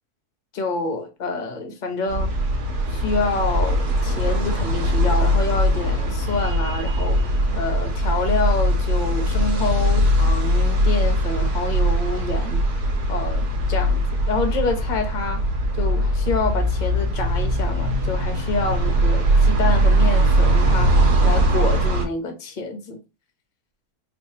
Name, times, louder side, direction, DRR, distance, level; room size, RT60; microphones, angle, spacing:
voice 1, 0.5-2.3 2.9-7.2 7.5-12.6 13.1-15.4 15.7-20.9 21.2-23.0, left 3 dB, 40° left, 0.8 m, -27 dB
sound 1, 2.1-22.1, right 1 dB, 70° right, 1.5 m, -20 dB
4.4 x 2.6 x 2.8 m
omnidirectional pair, 1.7 m